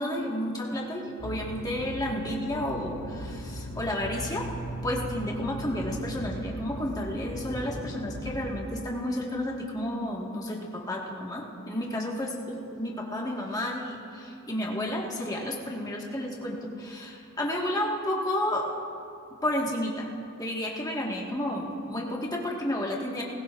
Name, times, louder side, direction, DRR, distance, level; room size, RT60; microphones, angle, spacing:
voice 1, 0.0-4.5 4.8-18.7 19.4-20.1 20.4-23.2, left 1 dB, 15° left, -2 dB, 1.6 m, -31 dB
sound 1, 1.2-8.5, equal, 85° left, 2.7 m, -38 dB
20.0 x 17.5 x 2.5 m, 2.6 s
head